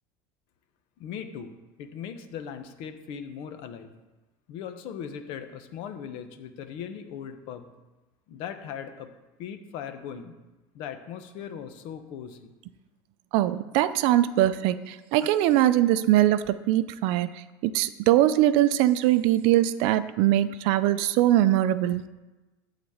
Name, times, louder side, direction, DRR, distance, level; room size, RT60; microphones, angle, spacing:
voice 1, 1.0-3.9 4.5-7.7 8.3-9.1 9.4-10.3 10.7-12.5, left 8 dB, 55° left, 8 dB, 1.0 m, -39 dB
voice 2, 13.3-22.0, right 13 dB, 60° right, 13 dB, 0.5 m, -22 dB
11.5 x 4.1 x 7.9 m, 1.1 s
cardioid pair, 160°, 11 cm